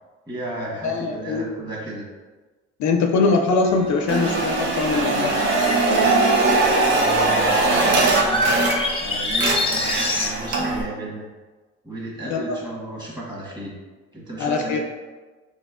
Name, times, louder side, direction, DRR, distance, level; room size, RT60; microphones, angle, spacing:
voice 1, 0.3-2.0 6.7-8.6 9.0-11.3 11.8-13.8 14.1-14.8, right 1 dB, 15° right, -4 dB, 1.3 m, -34 dB
voice 2, 0.8-1.4 2.8-5.4 12.2-12.6 14.4-14.8, left 4 dB, 70° left, 4 dB, 0.5 m, -22 dB
sound 1, 3.6-10.3, left 2 dB, 20° left, 0.5 m, -29 dB
sound 2, 4.1-9.0 9.3-10.8, right 3 dB, 70° right, 0.7 m, -20 dB
4.0 x 3.0 x 2.5 m, 1.3 s
cardioid pair, 90°, 30 cm